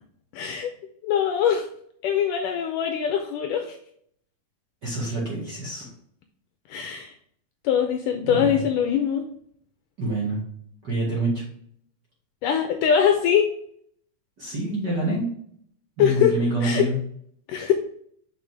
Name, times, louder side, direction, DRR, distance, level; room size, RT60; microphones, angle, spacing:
voice 1, 0.3-0.7 1.0-1.7 2.0-3.8 6.7-7.1 7.6-9.2 12.4-13.5 16.0-16.3 16.6-16.9 17.5-17.7, left 8 dB, 80° left, 5 dB, 2.0 m, -22 dB
voice 2, 4.8-5.9 8.3-8.6 10.0-10.4 10.8-11.4 14.4-15.3 16.0-17.0, right 1 dB, 40° right, -5 dB, 1.7 m, -26 dB
6.5 x 5.3 x 3.5 m, 0.64 s
omnidirectional pair, 4.2 m